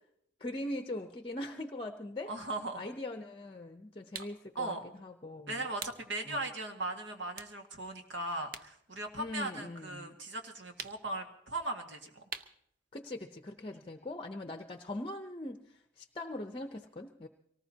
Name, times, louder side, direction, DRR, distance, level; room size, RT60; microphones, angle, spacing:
voice 1, 0.4-2.3 2.8-5.6 6.3-6.4 9.2-10.2 12.9-17.3, left 1 dB, 30° left, 7 dB, 0.7 m, -41 dB
voice 2, 2.3-2.9 4.6-4.8 5.5-12.2, right 2 dB, 80° right, 4 dB, 1.9 m, -38 dB
sound 1, 4.1-4.4 5.8-6.1 6.6-6.7 7.3-8.8 9.1-10.1 10.8-11.2 12.3-12.7, right 6 dB, 50° right, 0.7 m, -44 dB
24.5 x 19.0 x 2.8 m, 0.73 s
head